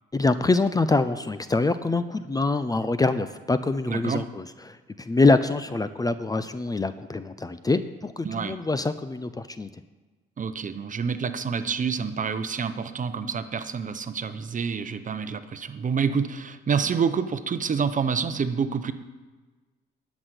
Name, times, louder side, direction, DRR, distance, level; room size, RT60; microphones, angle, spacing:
voice 1, 0.1-9.7, left 3 dB, 20° left, 12 dB, 0.6 m, -25 dB
voice 2, 3.9-4.2 8.2-8.5 10.4-18.9, right 6 dB, 40° right, 11 dB, 0.9 m, -28 dB
11.5 x 6.2 x 8.2 m, 1.3 s
cardioid pair, 90°, 20 cm